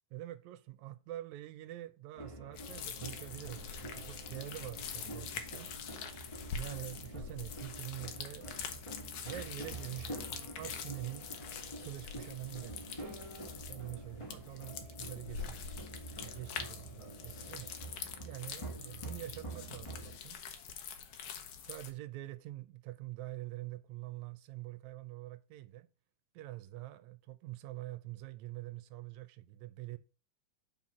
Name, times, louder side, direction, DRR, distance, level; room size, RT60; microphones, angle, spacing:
voice 1, 0.1-5.7 6.5-8.5 9.2-11.3 11.8-13.2 13.6-15.6 16.2-17.7 18.2-20.4 21.6-25.9 26.3-30.0, right 16 dB, 80° right, 1.8 m, -45 dB
sound 1, 2.1-20.2, right 2 dB, 25° left, 0.7 m, -47 dB
sound 2, 2.5-21.9, left 7 dB, 65° left, 1.7 m, -45 dB
5.6 x 4.8 x 5.9 m
omnidirectional pair, 3.4 m